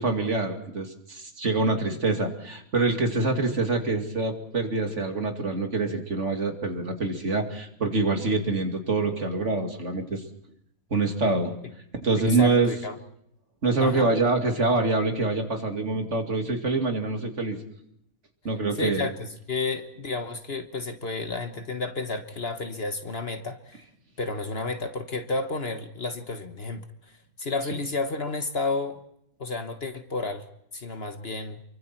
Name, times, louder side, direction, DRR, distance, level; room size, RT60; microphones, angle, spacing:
voice 1, 0.0-10.2 10.9-11.5 12.0-12.7 13.6-17.6 18.4-19.1, right 3 dB, 55° right, 4 dB, 2.7 m, -25 dB
voice 2, 12.2-13.0 13.8-14.1 18.7-23.8 24.2-29.0 29.4-30.4 30.7-31.6, left 3 dB, 45° left, 8 dB, 1.4 m, -31 dB
28.5 x 23.5 x 4.5 m, 0.75 s
omnidirectional pair, 1.5 m